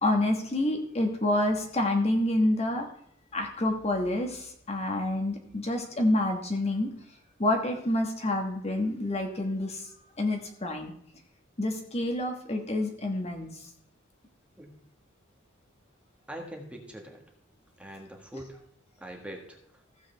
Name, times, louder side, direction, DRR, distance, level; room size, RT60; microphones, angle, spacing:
voice 1, 0.0-2.9 3.3-6.9 7.4-10.9 11.6-13.7, left 1 dB, 35° left, 3 dB, 1.3 m, -28 dB
voice 2, 16.3-17.2 17.8-18.6 19.0-19.8, right 1 dB, 5° right, 2 dB, 1.5 m, -43 dB
15.0 x 7.6 x 3.4 m, 0.69 s
head